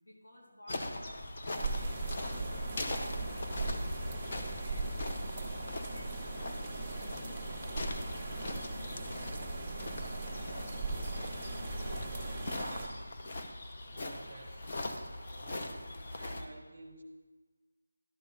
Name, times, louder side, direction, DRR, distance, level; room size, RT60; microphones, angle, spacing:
voice 1, 0.0-4.0 4.3-8.3 8.8-12.4, equal, 85° left, -3 dB, 2.7 m, -55 dB
sound 1, 0.7-16.5, left 1 dB, 35° left, 0.7 m, -41 dB
sound 2, 1.6-12.9, right 2 dB, 5° right, 1.0 m, -39 dB
voice 2, 13.9-17.0, right 2 dB, 35° right, 5 dB, 0.9 m, -53 dB
12.0 x 5.8 x 3.9 m, 1.3 s
figure-of-eight pair, 170°, 0 cm